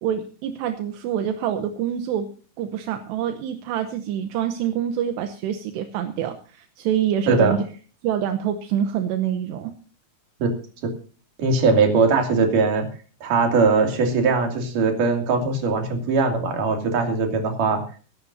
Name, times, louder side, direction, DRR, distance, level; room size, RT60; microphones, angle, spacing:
voice 1, 0.0-2.3 2.6-7.6 8.0-9.7, right 9 dB, 80° right, 7 dB, 3.0 m, -26 dB
voice 2, 11.4-12.8 13.2-17.8, right 4 dB, 50° right, 3 dB, 3.9 m, -20 dB
23.5 x 11.5 x 2.7 m, 0.39 s
omnidirectional pair, 5.1 m